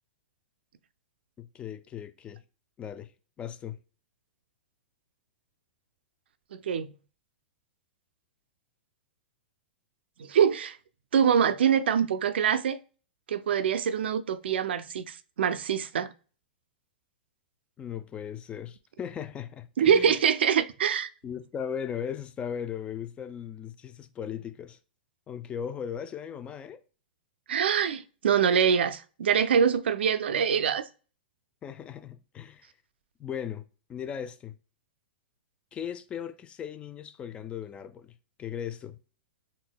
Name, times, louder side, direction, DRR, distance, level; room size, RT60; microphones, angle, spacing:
voice 1, 1.4-2.4 2.8-3.1 3.4-3.8 17.8-20.2 21.2-24.8 25.3-26.8 31.6-32.7 33.2-33.6 33.9-34.5 35.7-38.1 38.4-39.0, left 8 dB, 20° left, 0.3 m, -37 dB
voice 2, 6.5-6.9 10.2-10.8 11.1-12.8 13.3-16.1 19.8-21.1 27.5-30.9, right 7 dB, 80° right, 0.4 m, -24 dB
4.2 x 2.5 x 2.2 m
hypercardioid pair, 135°, 6 cm